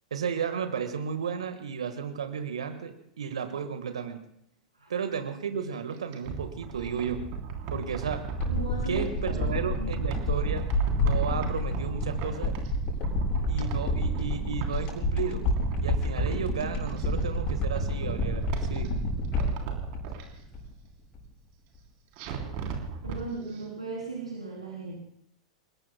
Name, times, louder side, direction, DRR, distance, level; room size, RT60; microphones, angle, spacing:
voice 1, 0.1-4.2 4.9-7.2 7.7-8.2 8.9-10.7 11.0-12.5 13.5-15.4 15.8-18.9, right 7 dB, 70° right, 8 dB, 1.4 m, -33 dB
sound 1, 5.9-9.1 9.5-12.8 13.0-14.9 15.2-17.0 17.4-18.9 19.2-20.2 22.2-23.2 23.5-23.6, right 6 dB, 45° right, 3.4 m, -36 dB
sound 2, 8.4-20.9 21.2-21.3, left 1 dB, 35° left, 7.7 m, -29 dB
voice 2, 8.5-10.0 23.0-25.0, right 2 dB, 85° right, -4 dB, 3.3 m, -37 dB
30.0 x 20.0 x 2.2 m, 0.73 s
figure-of-eight pair, 95°, 3 cm